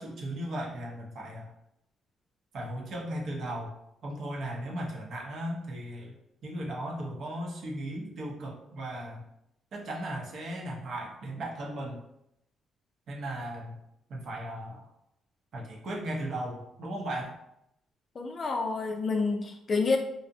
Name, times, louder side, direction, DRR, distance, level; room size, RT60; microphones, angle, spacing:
voice 1, 0.0-1.5 2.5-3.7 4.0-6.1 6.4-9.2 9.7-12.0 13.1-13.8 14.1-14.9 15.5-17.3, right 1 dB, 65° right, -2 dB, 0.7 m, -36 dB
voice 2, 18.2-20.0, left 4 dB, 40° left, 3 dB, 0.4 m, -28 dB
2.5 x 2.0 x 2.6 m, 0.82 s
cardioid pair, 90°, 0 cm